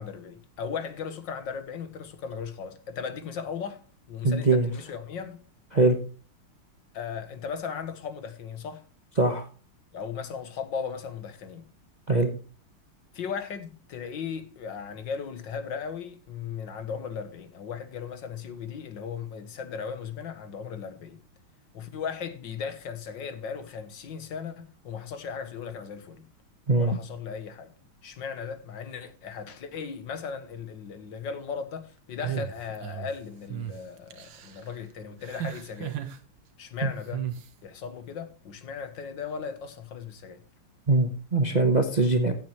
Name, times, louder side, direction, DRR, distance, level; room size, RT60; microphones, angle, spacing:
voice 1, 0.0-3.8 4.1-5.4 6.9-8.8 9.9-11.6 13.1-21.2 21.7-26.2 26.8-27.7 28.0-36.0 36.6-37.2 37.6-40.4, left 6 dB, 60° left, 1.7 m, -37 dB
voice 2, 4.2-4.7 5.7-6.0 9.2-9.5 12.1-12.3 26.7-27.0 36.8-36.9 40.9-42.3, right 2 dB, 30° right, 0.8 m, -22 dB
sound 1, 32.2-33.1 33.5-33.7 34.1-34.6 35.2-36.2 37.1-37.5, right 10 dB, 65° right, 1.8 m, -34 dB
15.5 x 8.7 x 3.1 m
omnidirectional pair, 2.4 m